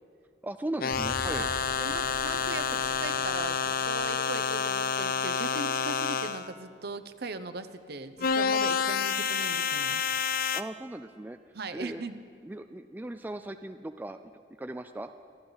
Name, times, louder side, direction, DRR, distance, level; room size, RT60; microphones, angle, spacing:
voice 1, 0.4-1.5 10.5-11.4 11.7-12.0 12.4-14.3 14.6-15.1, right 1 dB, 10° right, 8 dB, 0.3 m, -38 dB
sound 1, 0.8-6.5 8.2-10.6, left 6 dB, 50° left, 0.5 m, -29 dB
sound 2, 0.9-5.1, left 1 dB, 25° left, 0.9 m, -45 dB
voice 2, 1.3-10.0 11.5-12.2, right 3 dB, 60° right, 11 dB, 0.8 m, -39 dB
27.0 x 11.5 x 4.0 m, 2.2 s
head